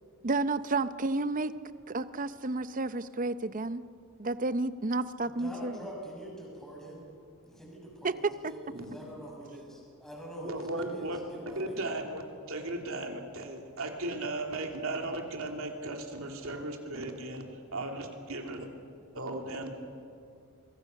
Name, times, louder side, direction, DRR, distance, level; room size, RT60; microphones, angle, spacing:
voice 1, 0.2-1.5 1.9-3.8 4.2-5.8 8.0-8.6, right 3 dB, 40° right, 13 dB, 0.7 m, -31 dB
voice 2, 5.2-7.1 7.4-11.9, right 1 dB, ahead, -3 dB, 6.4 m, -44 dB
voice 3, 10.4-18.7 19.1-19.7, right 2 dB, 70° right, 3 dB, 2.9 m, -36 dB
24.5 x 23.5 x 6.6 m, 2.4 s
head